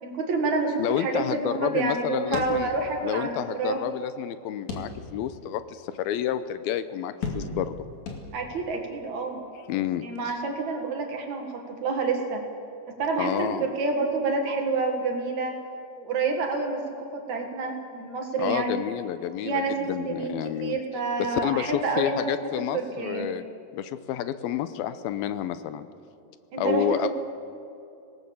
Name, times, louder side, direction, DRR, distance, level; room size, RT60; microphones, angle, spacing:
voice 1, 0.0-3.8 8.3-9.4 10.0-12.4 13.0-15.6 16.0-18.8 19.4-20.3 20.6-23.3 26.5-27.1, right 4 dB, 55° right, 3 dB, 3.1 m, -28 dB
voice 2, 0.8-2.7 3.0-7.8 9.7-10.3 13.2-13.7 18.4-20.8 21.2-23.4 23.7-25.9 26.6-27.1, left 11 dB, 85° left, 12 dB, 2.7 m, -29 dB
sound 1, 2.3-3.2 3.5-3.6 4.7-5.3 5.9-6.0 7.2-7.8 8.1-8.7, left 3 dB, 55° left, 3.3 m, -35 dB
25.5 x 18.5 x 7.2 m, 2.8 s
omnidirectional pair, 4.3 m